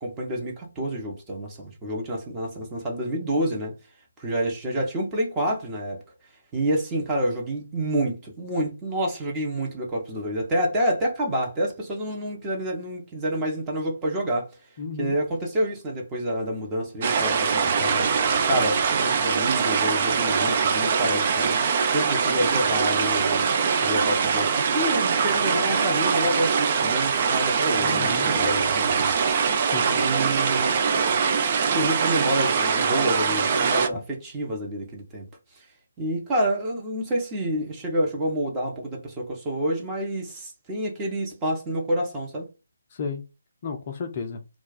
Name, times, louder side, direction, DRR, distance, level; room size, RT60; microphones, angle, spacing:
voice 1, 0.0-3.7 4.2-6.0 6.5-14.5 15.0-18.0 18.4-23.5 23.8-29.2 29.9-30.8 31.7-35.3 35.6-35.7 36.0-42.5, right 1 dB, 15° right, 0.9 m, -28 dB
voice 2, 14.8-15.2 27.8-28.4 29.7-29.9 42.9-43.2 43.6-44.4, left 5 dB, 35° left, 0.4 m, -33 dB
sound 1, 17.0-33.9, right 6 dB, 35° right, 0.4 m, -23 dB
2.3 x 2.2 x 4.0 m
figure-of-eight pair, 145°, 0 cm